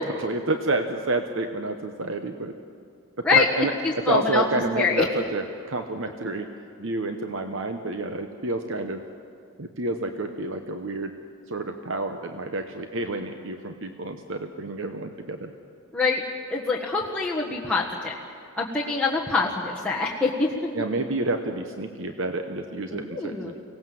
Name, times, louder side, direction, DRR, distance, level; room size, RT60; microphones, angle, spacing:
voice 1, 0.0-2.5 3.2-3.7 4.0-6.5 6.8-9.0 9.6-11.1 11.5-15.5 20.7-23.5, right 2 dB, 60° right, 6 dB, 1.1 m, -29 dB
voice 2, 3.8-4.4 4.7-5.0 15.9-16.2 16.5-18.1 18.5-20.5 22.9-23.5, left 4 dB, 5° left, -5 dB, 1.5 m, -24 dB
24.5 x 18.0 x 7.8 m, 2.3 s
head